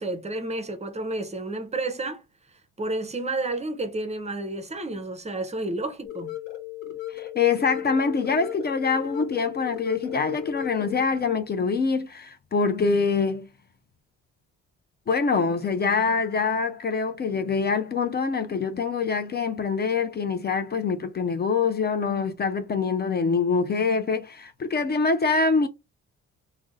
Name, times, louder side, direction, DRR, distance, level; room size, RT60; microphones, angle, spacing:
voice 1, 0.0-2.2 2.8-6.3, right 2 dB, 20° right, 0.6 m, -31 dB
sound 1, 6.0-11.0, left 14 dB, 80° left, 0.9 m, -36 dB
voice 2, 7.1-13.5 15.1-25.7, left 5 dB, 35° left, 0.4 m, -25 dB
2.4 x 2.0 x 3.8 m
cardioid pair, 90°, 30 cm